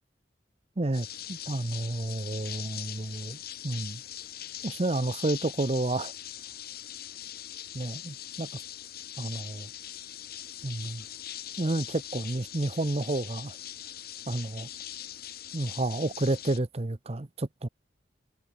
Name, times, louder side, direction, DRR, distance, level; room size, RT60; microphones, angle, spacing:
voice 1, 0.8-3.4 3.6-4.0 4.6-6.1 7.7-8.5 9.2-9.7 10.6-11.0 11.6-13.6 14.3-14.7 15.5-17.7, right 2 dB, 35° right, 0.8 m, -30 dB
sound 1, 0.9-16.6, left 11 dB, 55° left, 2.0 m, -41 dB
head